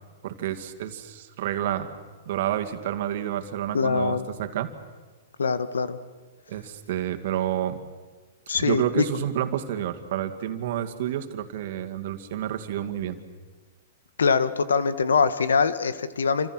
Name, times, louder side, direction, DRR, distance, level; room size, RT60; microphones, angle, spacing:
voice 1, 0.2-1.9 2.3-4.7 6.5-7.8 8.6-13.2, right 11 dB, 60° right, 8 dB, 2.3 m, -29 dB
voice 2, 3.7-4.3 5.4-6.0 8.5-9.0 14.2-16.5, left 5 dB, 90° left, 13 dB, 1.5 m, -23 dB
28.0 x 26.5 x 6.2 m, 1.4 s
hypercardioid pair, 125°, 0 cm